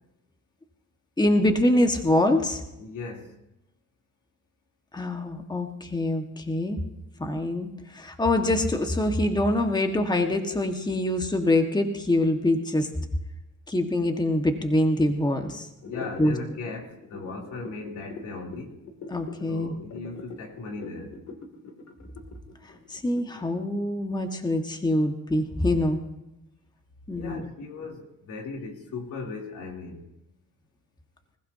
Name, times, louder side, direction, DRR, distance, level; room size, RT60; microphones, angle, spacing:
voice 1, 1.2-2.6 4.9-6.8 7.2-12.9 13.7-15.7 16.2-16.3 19.1-19.7 22.9-26.0 27.1-27.4, left 1 dB, 15° left, 1.6 m, -24 dB
voice 2, 2.8-3.3 15.8-18.8 19.5-21.2 27.1-30.1, left 3 dB, 80° left, 3.3 m, -38 dB
sound 1, 15.8-23.6, left 4 dB, 60° left, 2.8 m, -42 dB
26.5 x 15.5 x 2.8 m
cardioid pair, 90°, 30 cm